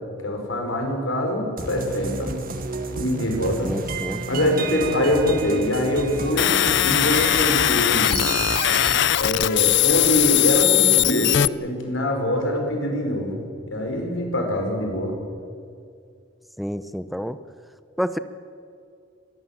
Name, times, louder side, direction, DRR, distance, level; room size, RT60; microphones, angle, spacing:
voice 1, 0.2-2.3 3.0-3.8 4.3-6.5 6.8-8.2 9.2-11.3 11.6-13.4 13.7-15.2, left 1 dB, 80° left, 3 dB, 5.3 m, -24 dB
sound 1, 1.6-9.0, right 4 dB, 45° right, 1.8 m, -31 dB
voice 2, 3.6-4.2 16.6-17.4 18.0-18.2, equal, ahead, 11 dB, 0.7 m, -28 dB
sound 2, 6.4-11.5, left 12 dB, 60° left, 0.5 m, -20 dB
24.5 x 19.0 x 7.4 m, 2.3 s
head